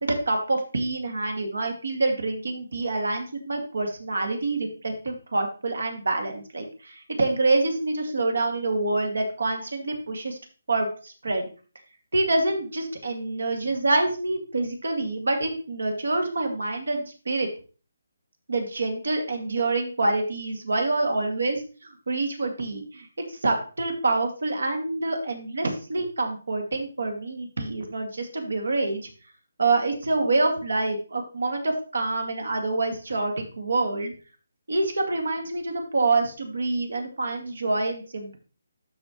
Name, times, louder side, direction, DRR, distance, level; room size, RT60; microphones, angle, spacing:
voice 1, 0.0-10.4 10.7-11.4 12.1-17.5 18.5-29.1 29.6-34.1 34.7-38.4, right 2 dB, 85° right, 4 dB, 2.2 m, -26 dB
13.0 x 4.5 x 3.1 m, 0.36 s
hypercardioid pair, 170°, 0 cm